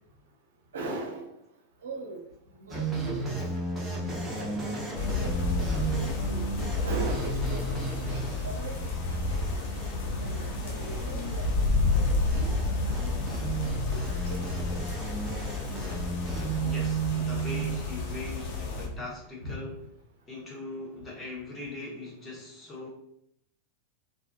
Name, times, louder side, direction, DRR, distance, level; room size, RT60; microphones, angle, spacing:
voice 1, 0.7-1.3 1.8-2.2 2.5-3.3 4.4-8.2 8.4-9.4 10.2-11.5 11.9-14.8 19.4-19.6, right 2 dB, 60° right, 1 dB, 0.5 m, -40 dB
sound 1, 2.7-17.8, right 3 dB, 10° right, 0.8 m, -34 dB
sound 2, 4.9-18.9, left 3 dB, 50° left, 0.6 m, -30 dB
voice 2, 16.6-19.7 20.3-22.9, left 2 dB, 15° left, -3 dB, 1.0 m, -40 dB
3.4 x 2.4 x 2.3 m, 0.75 s
figure-of-eight pair, 90°, 0 cm